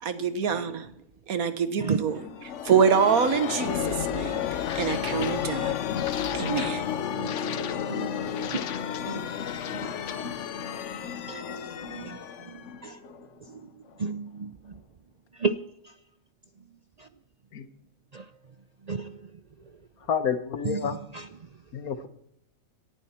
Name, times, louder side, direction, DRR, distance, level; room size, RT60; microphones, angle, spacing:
voice 1, 0.0-0.9 1.3-4.4 4.8-5.8 6.3-6.8, right 6 dB, 90° right, 11 dB, 1.7 m, -25 dB
sound 1, 2.1-13.6, left 9 dB, 60° left, 1.0 m, -32 dB
voice 2, 7.6-8.1 8.5-8.6 9.0-9.2 9.8-9.9 11.3-12.2 12.8-13.0 14.0-14.4 15.4-15.6 18.1-18.2 18.9-19.1 20.6-20.8 21.1-21.3, right 4 dB, 60° right, 12 dB, 0.4 m, -31 dB
voice 3, 20.1-21.0 21.7-22.1, left 7 dB, 90° left, 12 dB, 1.6 m, -29 dB
18.5 x 11.0 x 4.4 m, 0.76 s
omnidirectional pair, 1.5 m